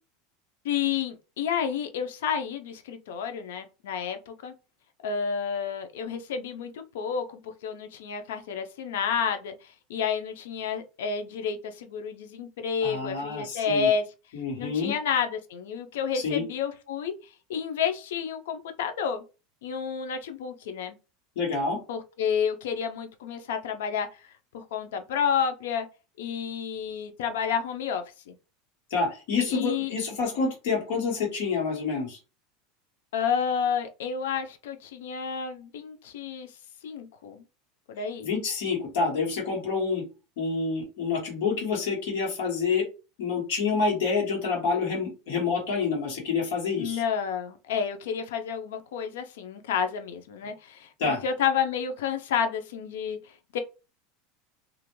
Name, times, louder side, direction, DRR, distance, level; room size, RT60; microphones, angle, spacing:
voice 1, 0.6-4.5 5.0-14.0 14.6-17.1 17.5-19.2 19.6-20.9 21.9-24.1 24.5-25.9 26.2-28.3 29.5-29.9 33.1-36.5 36.8-37.4 37.9-38.3 46.8-53.6, left 7 dB, 90° left, 0.4 m, -30 dB
voice 2, 12.8-13.9 14.3-14.9 16.1-16.4 21.3-21.8 28.9-32.2 38.2-40.0 40.4-42.9 43.2-47.0 51.0-51.2, left 4 dB, 70° left, 1.3 m, -28 dB
2.4 x 2.1 x 3.0 m
supercardioid pair, 160°, 0 cm